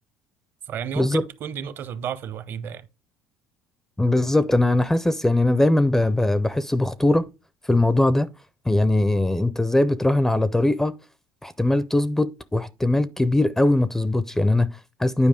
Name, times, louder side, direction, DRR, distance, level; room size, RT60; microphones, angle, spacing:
voice 1, 0.7-2.8, right 8 dB, 50° right, 0.8 m, -32 dB
voice 2, 4.0-7.3 7.6-8.3 8.7-10.9 11.4-15.3, left 1 dB, 5° left, 0.4 m, -21 dB
9.6 x 4.8 x 3.6 m
supercardioid pair, 105°, 5 cm